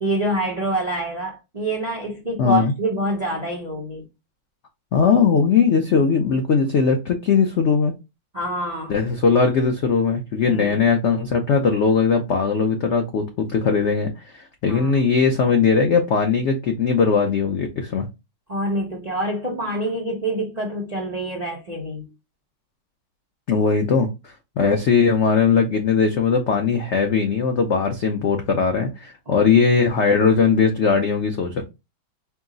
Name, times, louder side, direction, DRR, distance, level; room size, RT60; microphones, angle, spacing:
voice 1, 0.0-4.1 4.9-5.0 8.3-8.9 10.5-10.8 14.7-15.0 18.5-22.1 29.3-29.4, right 1 dB, 55° right, 0.4 m, -26 dB
voice 2, 2.4-2.7 4.9-7.9 8.9-18.0 23.5-31.6, left 5 dB, 90° left, 0.6 m, -19 dB
4.7 x 2.0 x 3.8 m
omnidirectional pair, 2.0 m